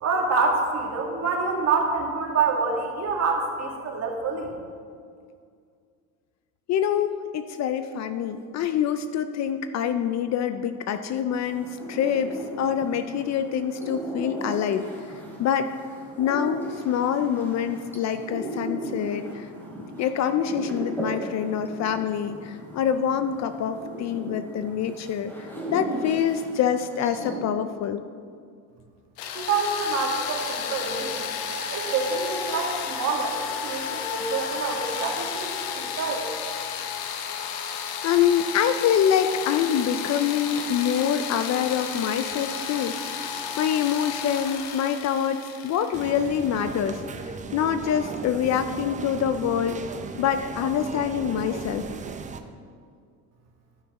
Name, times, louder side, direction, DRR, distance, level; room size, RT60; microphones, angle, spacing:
voice 1, 0.0-4.5 29.3-31.3 31.7-36.2, right 4 dB, 40° right, 1 dB, 1.9 m, -27 dB
voice 2, 6.7-14.9 15.4-15.7 16.2-19.5 20.0-28.0 38.0-47.0 47.5-49.8 50.2-51.9, left 8 dB, 45° left, 10 dB, 0.5 m, -25 dB
sound 1, 11.3-27.4, right 1 dB, 5° left, 2.7 m, -37 dB
sound 2, 29.2-46.9, left 6 dB, 65° left, 1.1 m, -32 dB
sound 3, 45.9-52.4, right 5 dB, 20° right, 0.5 m, -37 dB
11.5 x 6.0 x 5.3 m, 2.2 s
cardioid pair, 120°, 39 cm